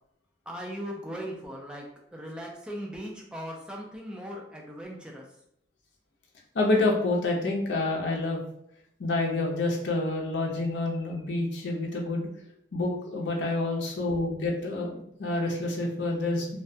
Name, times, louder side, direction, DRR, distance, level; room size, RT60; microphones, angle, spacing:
voice 1, 0.5-1.8 2.1-5.2, equal, 5° right, -1 dB, 0.4 m, -38 dB
voice 2, 6.5-8.4 9.0-12.3 12.7-16.5, left 2 dB, 85° left, -1 dB, 0.5 m, -28 dB
2.2 x 2.1 x 2.6 m, 0.75 s
head